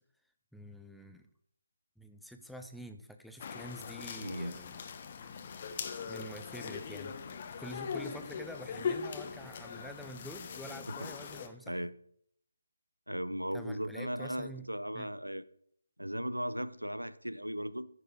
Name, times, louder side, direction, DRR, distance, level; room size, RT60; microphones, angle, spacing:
voice 1, 0.5-1.3 2.0-4.7 6.1-7.2 7.6-11.9 13.5-14.7 14.9-15.1, equal, ahead, 0.5 m, -47 dB
sound 1, 3.4-11.5, left 6 dB, 30° left, 1.1 m, -40 dB
voice 2, 4.2-4.5 11.0-11.1 11.7-11.9 13.1-15.4 16.0-17.9, equal, 85° right, 0.7 m, -37 dB
15.0 x 6.7 x 4.8 m
figure-of-eight pair, 150°, 0 cm